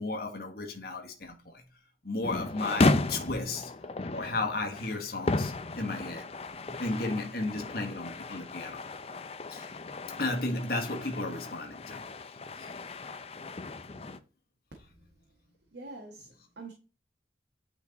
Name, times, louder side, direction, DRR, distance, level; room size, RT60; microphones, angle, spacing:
voice 1, 0.0-1.6 2.0-3.7 4.1-6.3 6.7-8.8 9.5-9.7 10.2-12.0 12.6-13.0, left 2 dB, 60° left, 1.6 m, -34 dB
sound 1, 2.2-14.2, left 2 dB, 35° left, 0.5 m, -34 dB
voice 2, 15.7-16.7, right 3 dB, 75° right, 1.7 m, -45 dB
9.2 x 4.6 x 4.1 m
head